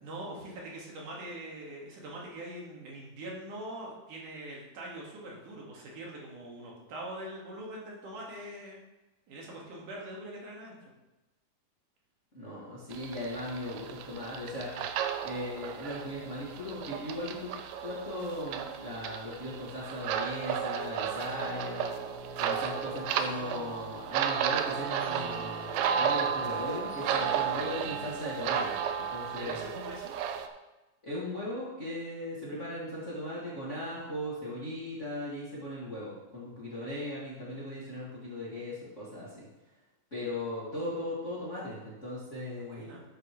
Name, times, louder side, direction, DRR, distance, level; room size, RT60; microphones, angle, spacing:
voice 1, 0.0-8.8 9.3-10.7 22.0-22.4 29.2-30.2 42.6-43.0, right 1 dB, 65° right, -3 dB, 3.3 m, -43 dB
voice 2, 12.3-14.8 15.2-17.5 17.8-21.9 22.4-25.6 25.9-28.8 29.1-29.7 31.0-39.5 40.1-42.9, left 1 dB, 25° left, -7 dB, 2.0 m, -38 dB
sound 1, 12.9-30.5, right 8 dB, 90° right, 2.4 m, -33 dB
sound 2, 21.2-28.8, left 1 dB, 40° left, 2.0 m, -46 dB
12.0 x 8.3 x 3.2 m, 1.1 s
omnidirectional pair, 4.0 m